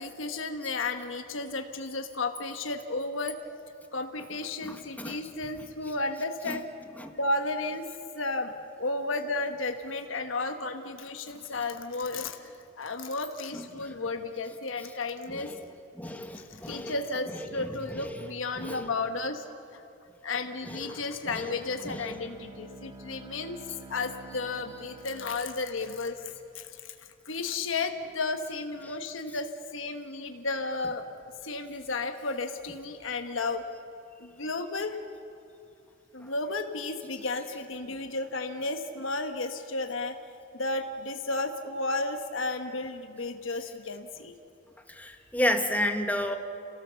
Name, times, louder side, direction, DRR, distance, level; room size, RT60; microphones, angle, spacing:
voice 1, 0.0-3.4 3.9-6.7 7.2-7.9 8.1-15.5 16.3-19.4 19.7-19.8 20.2-23.6 23.9-26.9 27.2-31.0 31.4-33.6 34.2-35.0 36.1-40.2 40.5-44.3, left 3 dB, 75° left, 6 dB, 1.3 m, -33 dB
voice 2, 4.6-5.2 6.5-6.6 7.0-7.1 13.5-13.9 15.3-15.6 15.9-16.9 17.3-18.2 18.6-18.9 20.6-22.2 28.8-28.9 36.2-36.3 44.9-46.4, left 1 dB, 10° left, 4 dB, 1.4 m, -33 dB
Bowed string instrument, 21.6-26.6, right 2 dB, 25° right, 1.8 m, -49 dB
29.0 x 17.0 x 7.0 m, 2.7 s
head